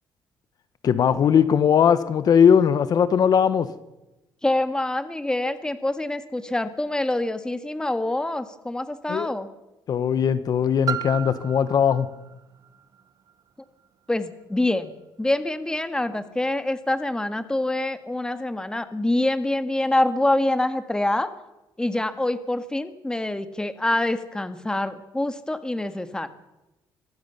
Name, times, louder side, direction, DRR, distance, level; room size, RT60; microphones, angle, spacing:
voice 1, 0.8-3.7 9.1-9.3 9.9-12.1, left 7 dB, 55° left, 12 dB, 1.3 m, -19 dB
voice 2, 4.4-9.5 14.1-14.9 15.2-21.3 21.8-26.3, left 1 dB, 10° left, 10 dB, 1.8 m, -25 dB
Piano, 10.9-16.3 17.0-17.1, right 10 dB, 50° right, 1.2 m, -37 dB
24.5 x 15.5 x 7.0 m, 0.97 s
cardioid pair, 110°, 8 cm